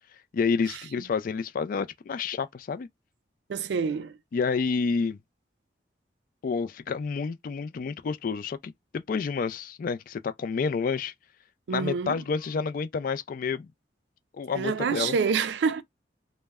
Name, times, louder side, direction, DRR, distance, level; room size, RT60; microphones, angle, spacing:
voice 1, 0.3-2.9 4.3-5.2 6.4-11.1 11.7-13.7 14.3-15.1, left 5 dB, 50° left, 0.3 m, -29 dB
voice 2, 3.5-4.2 11.7-12.2 14.5-15.8, right 5 dB, 75° right, 0.3 m, -27 dB
2.1 x 2.1 x 3.4 m
head